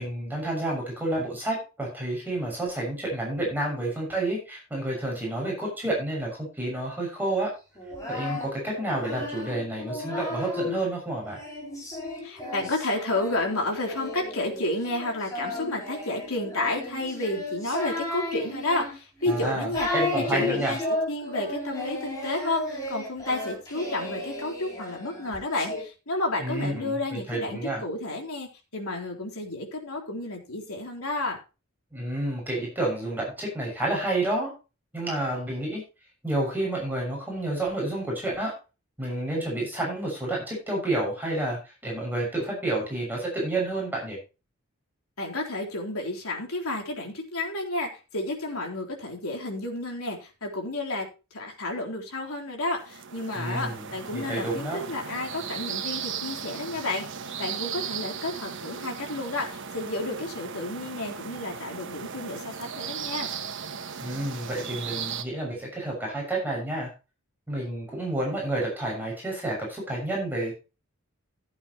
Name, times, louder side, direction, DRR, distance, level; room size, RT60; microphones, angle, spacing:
voice 1, 0.0-7.5 8.1-11.4 19.3-20.7 26.4-27.8 31.9-34.5 34.9-35.8 36.2-38.5 39.0-44.2 53.3-53.8 54.1-54.8 64.0-66.9 67.5-70.5, right 1 dB, 10° right, -2 dB, 6.6 m, -29 dB
Singing, 7.8-10.8 11.3-25.8, left 2 dB, 15° left, 5.8 m, -34 dB
voice 2, 12.2-19.9 20.1-20.8 21.1-31.4 45.2-57.1 57.4-63.3, left 2 dB, 80° left, 1 dB, 3.8 m, -31 dB
sound 1, 52.8-65.2, right 7 dB, 60° right, 1.2 m, -36 dB
16.0 x 8.8 x 3.0 m, 0.30 s
head